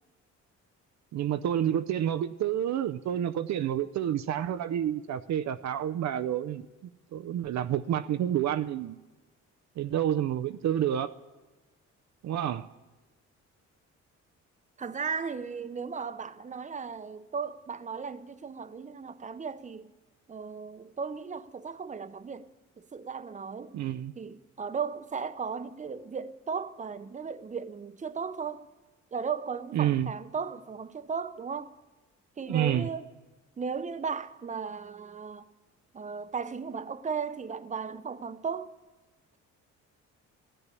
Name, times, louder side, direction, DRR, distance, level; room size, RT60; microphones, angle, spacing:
voice 1, 1.1-6.6 7.1-9.0 9.8-11.1 12.2-12.7 23.7-24.1 29.7-30.1 32.5-32.9, right 10 dB, 65° right, 0.6 m, -29 dB
voice 2, 14.8-19.9 20.3-22.5 22.8-23.7 24.2-28.7 29.1-31.7 32.4-33.1 33.6-35.4 35.9-38.7, right 5 dB, 25° right, 0.7 m, -36 dB
14.5 x 10.0 x 9.6 m
cardioid pair, 90°, 30 cm